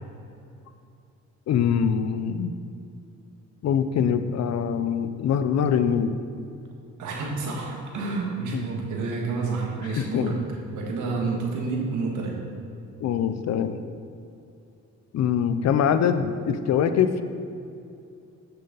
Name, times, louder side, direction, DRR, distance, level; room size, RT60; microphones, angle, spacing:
voice 1, 1.5-2.5 3.6-6.1 8.5-8.6 9.9-10.4 13.0-13.8 15.1-17.2, left 7 dB, 60° left, 10 dB, 0.6 m, -23 dB
voice 2, 7.0-10.4 10.7-12.4, right 4 dB, 80° right, -1 dB, 1.8 m, -29 dB
9.1 x 6.6 x 4.0 m, 2.6 s
cardioid pair, 90°, 30 cm